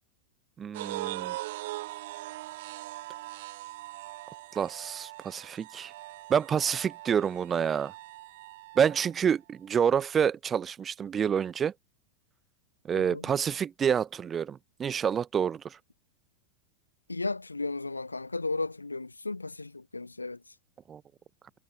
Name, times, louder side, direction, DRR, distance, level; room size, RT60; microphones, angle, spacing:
voice 1, 0.6-1.4 4.5-5.9 6.3-7.9 8.8-11.7 12.8-15.8 20.9-21.0, right 8 dB, 20° right, 0.5 m, -28 dB
sound 1, 0.7-9.1, right 18 dB, 55° right, 2.0 m, -41 dB
voice 2, 17.1-20.4, left 3 dB, 80° left, 1.4 m, -34 dB
figure-of-eight pair, 90°, 0 cm